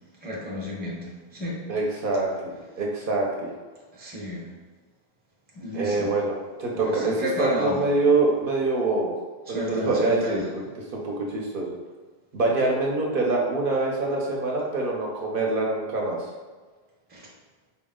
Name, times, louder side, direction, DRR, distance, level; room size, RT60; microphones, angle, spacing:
voice 1, 0.2-1.7 3.9-4.5 5.5-6.1 6.7-7.8 9.5-10.5 17.1-17.3, left 1 dB, 10° right, -4 dB, 0.5 m, -32 dB
voice 2, 1.7-3.5 5.7-9.1 9.5-10.4 10.9-11.8 12.3-16.3, right 3 dB, 65° right, -2 dB, 0.7 m, -25 dB
4.2 x 2.0 x 3.5 m, 1.4 s
omnidirectional pair, 1.1 m